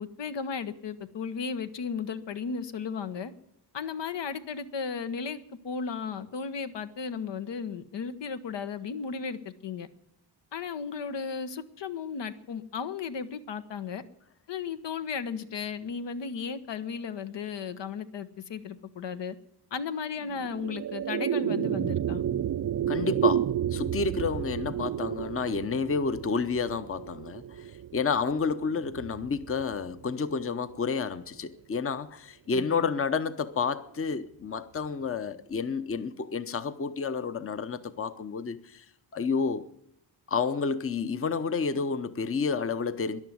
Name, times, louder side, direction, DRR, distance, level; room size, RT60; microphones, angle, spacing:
voice 1, 0.0-3.3 3.7-9.9 10.5-14.0 14.5-19.3 19.7-22.2 32.5-32.9, left 6 dB, 80° left, 1.2 m, -35 dB
sound 1, 20.2-30.7, right 10 dB, 50° right, 0.5 m, -32 dB
voice 2, 22.9-38.8 39.1-39.7 40.3-43.2, left 5 dB, 30° left, 0.8 m, -30 dB
13.5 x 11.0 x 9.3 m
wide cardioid pair, 125°, 42 cm